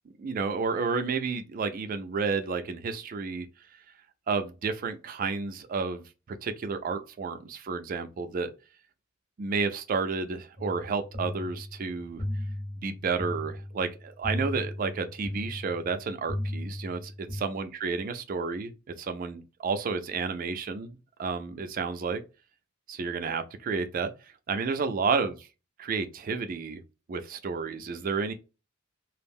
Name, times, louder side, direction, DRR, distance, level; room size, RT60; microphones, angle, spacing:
voice 1, 0.2-3.5 3.7-3.8 4.3-6.0 6.4-8.5 9.4-12.2 12.8-18.7 19.0-22.2 22.9-25.4 25.8-26.8 27.1-28.3, right 4 dB, 40° right, 0.3 m, -31 dB
sound 1, 10.6-17.4, left 1 dB, 15° left, 0.6 m, -36 dB
2.4 x 2.0 x 3.4 m
head